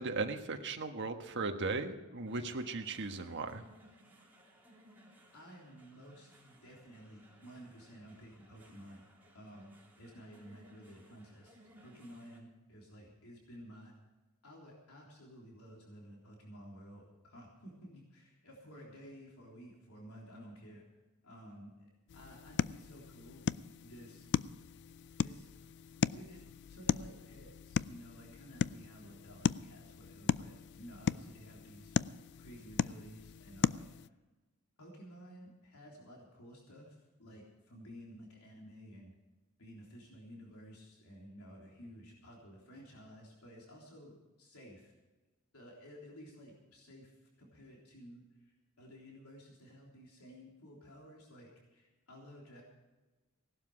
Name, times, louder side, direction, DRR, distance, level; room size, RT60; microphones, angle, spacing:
voice 1, 0.0-3.6, right 3 dB, 55° right, 5 dB, 1.4 m, -37 dB
sound 1, 2.3-12.4, equal, 10° right, 3.3 m, -62 dB
voice 2, 5.3-9.0 9.3-13.9 14.4-20.8 21.2-21.7 22.1-23.4 23.8-24.3 25.2-25.5 26.1-26.4 26.7-32.0 32.4-33.9 34.8-39.1 39.6-44.9 45.5-47.1 47.4-52.6, equal, 80° left, -2 dB, 3.6 m, -53 dB
sound 2, 22.1-34.1, left 6 dB, 50° left, 0.3 m, -37 dB
17.5 x 12.0 x 5.0 m, 1.2 s
head